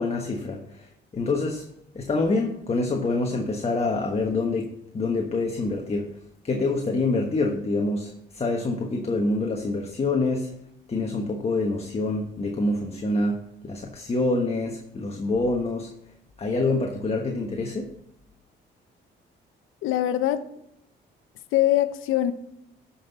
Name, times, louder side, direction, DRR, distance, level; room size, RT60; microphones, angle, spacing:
voice 1, 0.0-1.7 1.9-10.5 10.9-15.9 16.4-17.9, left 2 dB, 30° left, 2 dB, 1.2 m, -26 dB
voice 2, 19.8-20.5 21.5-22.3, left 13 dB, 90° left, 12 dB, 0.7 m, -22 dB
14.0 x 5.7 x 4.0 m, 0.81 s
cardioid pair, 90°, 20 cm